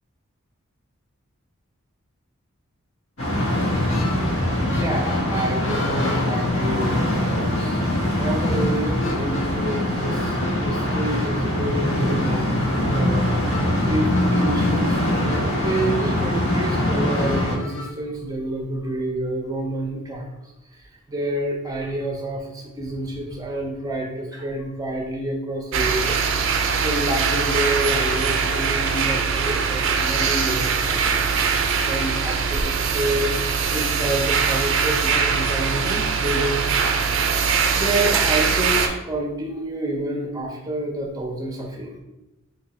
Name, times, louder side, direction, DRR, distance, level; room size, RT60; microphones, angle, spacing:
sound 1, 3.2-17.6, left 1 dB, 80° left, 1.1 m, -22 dB
sound 2, 3.4-17.9, left 3 dB, 60° left, 0.5 m, -37 dB
voice 1, 4.7-7.9 8.2-20.4 20.7-26.2 26.8-33.3 33.7-42.0, right 1 dB, 15° right, 0 dB, 0.6 m, -29 dB
sound 3, 25.7-38.9, right 6 dB, 60° right, 0.4 m, -22 dB
2.9 x 2.8 x 4.1 m, 0.94 s
head